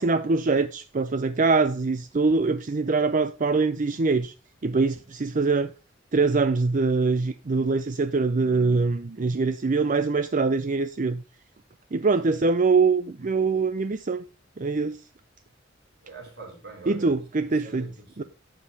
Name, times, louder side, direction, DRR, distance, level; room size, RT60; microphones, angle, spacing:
voice 1, 0.0-4.3 4.6-5.7 6.1-11.2 11.9-14.2 14.6-15.0 16.9-17.9 18.2-18.3, right 4 dB, 45° right, 0.5 m, -23 dB
voice 2, 16.0-17.1 17.5-18.3, right 3 dB, 60° right, 5.3 m, -44 dB
11.5 x 7.5 x 4.1 m
head